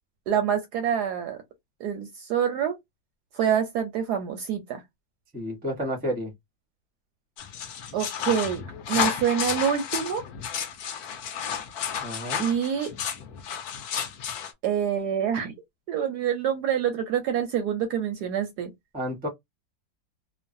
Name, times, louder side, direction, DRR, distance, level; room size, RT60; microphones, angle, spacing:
voice 1, 0.3-1.4 1.8-2.8 3.4-4.8 7.9-8.6 8.9-10.2 12.4-12.9 14.6-15.5 15.9-18.7, right 8 dB, 70° right, 1.0 m, -26 dB
voice 2, 5.3-6.3 12.0-12.4 18.9-19.3, equal, 10° right, 0.5 m, -30 dB
sound 1, 7.4-14.5, left 8 dB, 65° left, 1.0 m, -32 dB
3.1 x 2.0 x 2.5 m
omnidirectional pair, 2.1 m